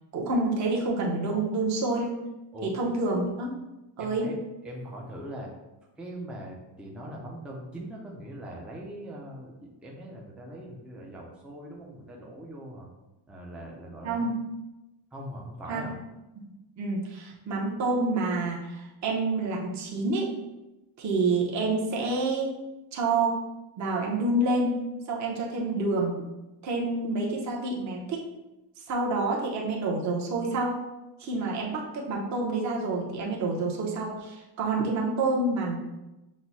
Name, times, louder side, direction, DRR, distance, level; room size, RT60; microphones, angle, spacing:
voice 1, 0.1-2.2 2.6-3.5 4.0-4.3 14.0-14.4 15.7-15.8 16.8-20.3 21.0-22.5 22.9-23.5 23.8-24.8 25.1-26.2 26.6-28.3 28.9-30.8 31.2-35.8, right 2 dB, 40° right, -2 dB, 0.7 m, -28 dB
voice 2, 4.0-4.4 4.6-5.5 6.0-12.9 13.3-14.3 15.1-15.9, right 1 dB, 5° right, -1 dB, 0.3 m, -41 dB
6.1 x 2.0 x 4.0 m, 1.0 s
cardioid pair, 175°, 44 cm